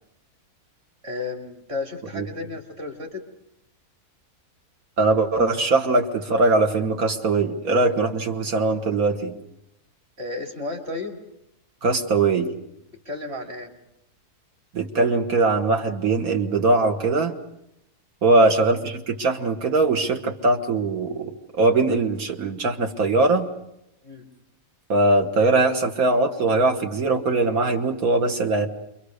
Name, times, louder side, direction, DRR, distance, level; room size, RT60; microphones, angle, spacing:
voice 1, 1.0-3.2 10.2-11.2 13.0-13.7 18.3-18.5 24.0-24.3, left 3 dB, 40° right, 3 dB, 3.2 m, -32 dB
voice 2, 5.0-9.3 11.8-12.5 14.7-17.4 18.2-21.3 21.6-23.5 24.9-28.7, right 3 dB, 65° right, 5 dB, 2.0 m, -21 dB
28.0 x 23.5 x 6.6 m, 0.80 s
omnidirectional pair, 1.6 m